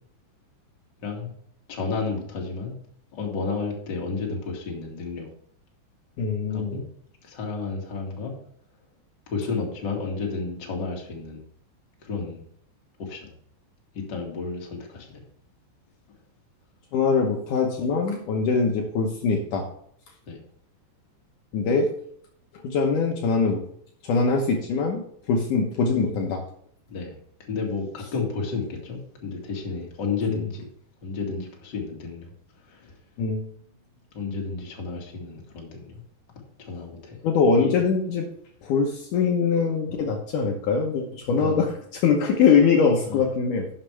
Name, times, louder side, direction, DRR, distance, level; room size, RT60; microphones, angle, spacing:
voice 1, 1.0-1.3 1.7-2.7 3.1-5.3 6.5-6.8 7.2-8.3 9.3-11.4 12.0-12.4 13.0-13.3 13.9-15.2 20.3-20.4 26.9-27.1 27.5-30.7 31.0-32.3 32.7-32.9 34.1-36.0 36.6-37.2 37.6-37.7 41.3-41.7 43.0-43.2, left 4 dB, 40° left, -1 dB, 1.6 m, -32 dB
voice 2, 6.2-6.8 16.9-19.7 21.5-22.0 22.6-23.6 24.0-25.0 25.3-26.4 33.2-33.5 37.2-38.3 38.6-43.7, left 5 dB, 90° left, 1 dB, 1.7 m, -22 dB
11.5 x 7.4 x 3.4 m, 0.64 s
omnidirectional pair, 5.3 m